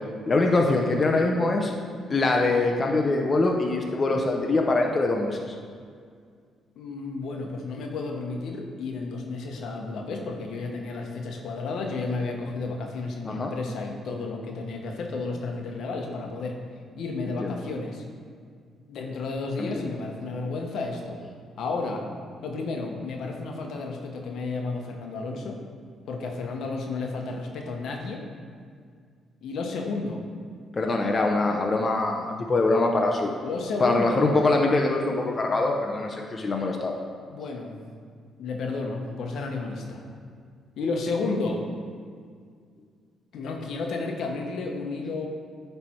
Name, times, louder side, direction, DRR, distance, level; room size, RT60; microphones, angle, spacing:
voice 1, 0.3-1.7 2.1-5.5 13.3-13.5 17.4-17.6 19.6-19.7 30.7-33.3 33.8-37.0, left 2 dB, 35° left, 1 dB, 0.7 m, -23 dB
voice 2, 6.8-16.6 17.0-18.0 18.9-21.2 21.6-22.0 22.4-25.6 26.1-28.2 29.4-30.3 33.4-34.3 37.3-37.8 38.4-40.0 40.8-41.6 43.3-45.3, left 3 dB, 70° left, 2 dB, 1.0 m, -32 dB
10.0 x 3.4 x 4.4 m, 2.1 s
cardioid pair, 90°, 0 cm